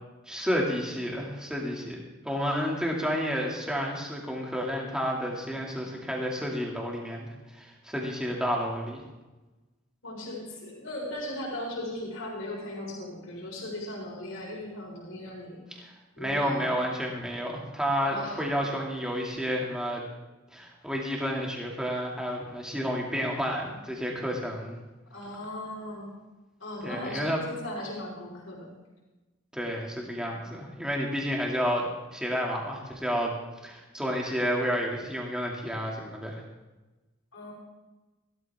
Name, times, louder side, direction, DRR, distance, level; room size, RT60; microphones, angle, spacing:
voice 1, 0.3-9.0 15.8-20.0 20.5-24.8 26.8-27.4 29.5-33.3 33.6-36.4, equal, 5° right, -2 dB, 2.2 m, -30 dB
voice 2, 10.0-15.8 16.2-16.7 18.1-18.4 25.1-26.1 26.6-28.7 37.3-37.5, left 1 dB, 80° left, -3 dB, 4.4 m, -37 dB
15.5 x 13.5 x 3.5 m, 1.1 s
head